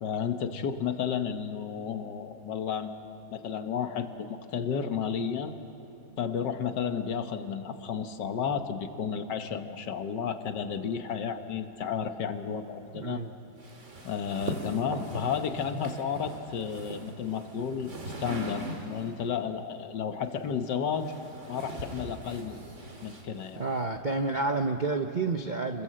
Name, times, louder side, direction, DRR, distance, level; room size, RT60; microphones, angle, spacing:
voice 1, 0.0-3.0 3.3-5.5 6.2-13.2 14.0-17.9 18.2-21.2 21.5-22.6 23.0-23.6, left 7 dB, 60° left, 8 dB, 1.6 m, -32 dB
voice 2, 12.9-13.3 23.5-25.8, right 3 dB, 85° right, 5 dB, 0.4 m, -29 dB
sound 1, 13.6-19.2 20.3-23.8, right 1 dB, 35° right, 2.5 m, -41 dB
28.5 x 21.5 x 7.6 m, 3.0 s
omnidirectional pair, 2.2 m